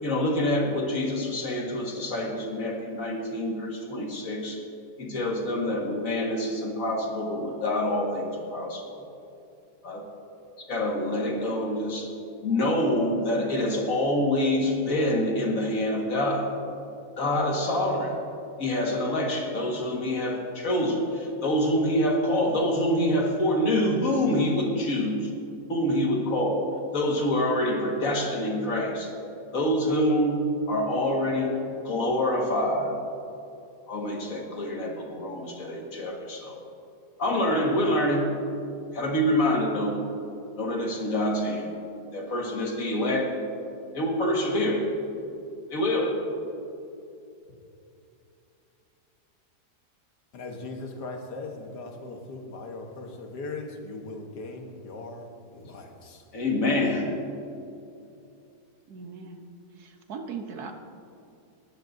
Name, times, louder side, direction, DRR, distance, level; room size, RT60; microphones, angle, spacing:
voice 1, 0.0-4.6 5.0-9.0 9.8-10.0 10.7-12.1 12.4-16.5 17.2-18.2 18.6-25.3 25.7-26.7 26.9-29.1 29.5-31.6 31.8-33.0 33.9-36.6 37.2-38.3 38.9-40.0 40.6-41.7 42.1-43.3 43.9-44.9 45.7-46.2 56.3-57.1, left 1 dB, 55° left, 0 dB, 2.1 m, -26 dB
voice 2, 50.3-55.3 55.5-56.2, left 3 dB, 85° left, 3 dB, 1.8 m, -39 dB
voice 3, 58.9-59.4 59.8-60.7, right 5 dB, 70° right, 5 dB, 1.5 m, -38 dB
19.0 x 12.0 x 2.7 m, 2.7 s
omnidirectional pair, 1.7 m